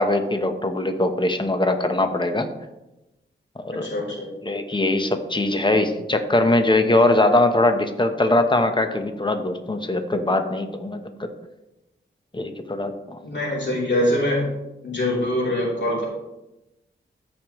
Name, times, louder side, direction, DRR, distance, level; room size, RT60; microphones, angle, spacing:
voice 1, 0.0-2.5 3.6-3.9 4.4-11.3 12.3-13.2, left 2 dB, 20° left, 7 dB, 1.1 m, -21 dB
voice 2, 3.7-4.3 13.2-14.5 14.8-16.1, left 1 dB, 60° left, -4 dB, 3.4 m, -23 dB
14.0 x 5.4 x 3.1 m, 0.96 s
cardioid pair, 65°, 21 cm